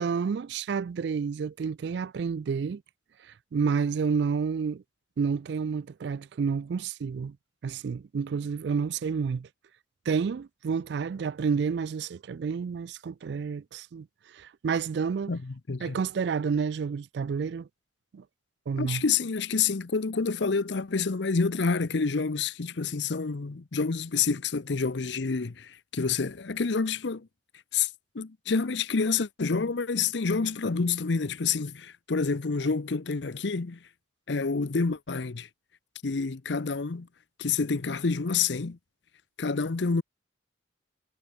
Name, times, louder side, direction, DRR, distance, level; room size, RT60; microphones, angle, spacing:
voice 1, 0.0-2.8 3.2-4.8 5.2-7.4 7.6-9.5 10.1-15.3 15.8-17.7 18.1-18.2 18.7-19.0, right 6 dB, 60° right, 0.3 m, -30 dB
voice 2, 15.3-16.0 18.8-27.3 27.7-33.8 34.3-35.5 36.0-37.1 37.4-38.8 39.4-40.0, left 5 dB, 65° left, 0.7 m, -28 dB
head